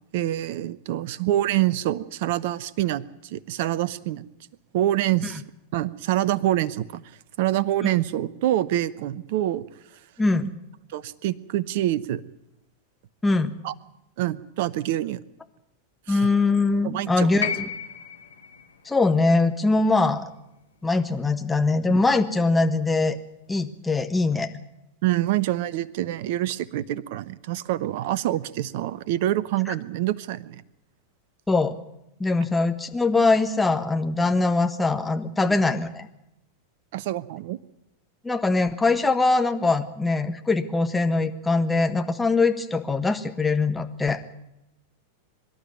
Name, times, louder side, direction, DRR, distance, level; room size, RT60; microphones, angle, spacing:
voice 1, 0.1-4.2 4.7-5.4 5.7-7.0 7.4-9.6 10.9-12.2 13.6-13.7 14.2-15.2 16.1-16.3 16.8-17.4 25.0-30.6 35.4-35.6 36.9-37.6, right 13 dB, 50° right, 20 dB, 0.9 m, -26 dB
voice 2, 10.2-10.5 13.2-13.5 16.1-17.7 18.8-20.3 20.8-23.2 23.5-24.5 31.5-31.8 32.2-36.1 38.2-44.2, left 3 dB, 10° left, 7 dB, 1.5 m, -22 dB
sound 1, 17.4-21.6 22.8-22.9, left 7 dB, 75° left, 1.9 m, -35 dB
24.5 x 12.0 x 9.3 m, 0.88 s
figure-of-eight pair, 90°, 0 cm